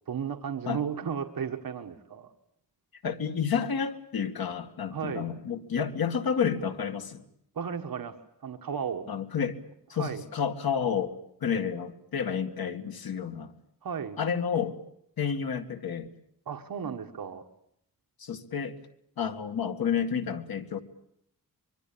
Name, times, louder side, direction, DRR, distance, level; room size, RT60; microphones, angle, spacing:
voice 1, 0.1-2.3 4.9-5.3 7.5-8.1 8.4-9.1 9.9-10.2 13.8-14.2 16.4-17.4, right 7 dB, 75° right, 4 dB, 1.7 m, -34 dB
voice 2, 3.0-7.2 9.1-9.6 9.9-11.1 11.4-13.5 14.2-14.8 15.2-16.1 18.2-18.8 19.2-20.8, left 7 dB, 90° left, 7 dB, 2.1 m, -30 dB
24.5 x 23.5 x 8.7 m, 0.71 s
wide cardioid pair, 175°, 35 cm